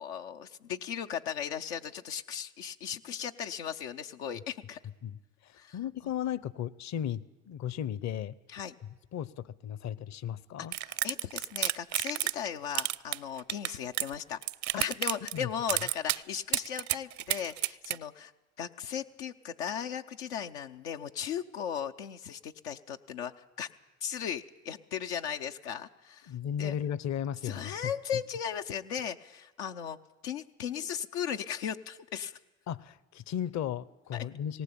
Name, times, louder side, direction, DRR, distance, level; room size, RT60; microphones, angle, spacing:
voice 1, 0.0-4.8 5.6-5.8 8.5-8.7 10.6-14.4 14.7-18.3 18.6-23.7 24.0-26.3 26.6-26.8 27.4-30.0 30.2-32.4 34.1-34.2, left 8 dB, 90° left, 5 dB, 0.7 m, -37 dB
voice 2, 5.0-8.3 9.1-10.7 14.7-14.8 15.3-15.5 26.3-27.9 32.7-34.6, left 9 dB, 55° left, 21 dB, 0.8 m, -35 dB
sound 1, 10.7-12.5 12.7-14.1 14.4-15.4 15.7-16.2 16.5-18.0, right 14 dB, 60° right, 0.6 m, -30 dB
19.0 x 18.0 x 8.6 m, 1.1 s
hypercardioid pair, 60°, 32 cm